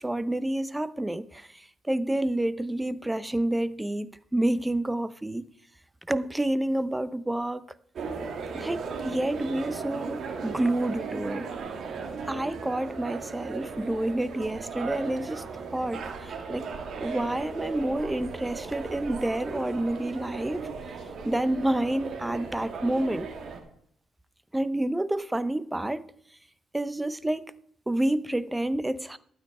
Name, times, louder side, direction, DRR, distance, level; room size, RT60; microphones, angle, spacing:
voice 1, 0.0-5.4 6.1-7.7 8.5-11.5 12.2-16.7 17.0-20.7 21.2-23.3 24.5-26.0 26.7-27.5 27.9-29.2, right 1 dB, 10° right, 0.7 m, -29 dB
sound 1, 8.0-23.6, right 5 dB, 60° right, 2.0 m, -37 dB
12.5 x 9.0 x 4.9 m
cardioid pair, 90°, 0 cm